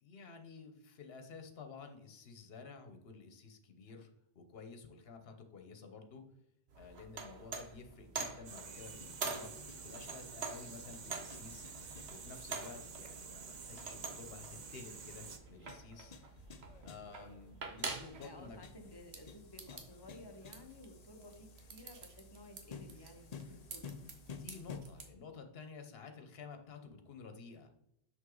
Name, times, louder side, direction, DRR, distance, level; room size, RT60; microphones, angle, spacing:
voice 1, 0.0-4.1 4.3-6.2 6.8-9.5 9.8-11.7 12.1-16.2 16.8-18.6 24.4-27.7, left 5 dB, 70° left, 6 dB, 1.2 m, -52 dB
sound 1, 6.7-25.1, right 4 dB, 75° right, 1.4 m, -47 dB
sound 2, 8.4-15.4, right 5 dB, 50° right, 0.8 m, -50 dB
sound 3, 8.7-24.8, left 6 dB, 45° left, 0.6 m, -55 dB
voice 2, 17.2-17.6 18.2-24.0, left 1 dB, 25° left, 4 dB, 1.1 m, -55 dB
6.2 x 6.1 x 3.8 m, 0.79 s
omnidirectional pair, 1.1 m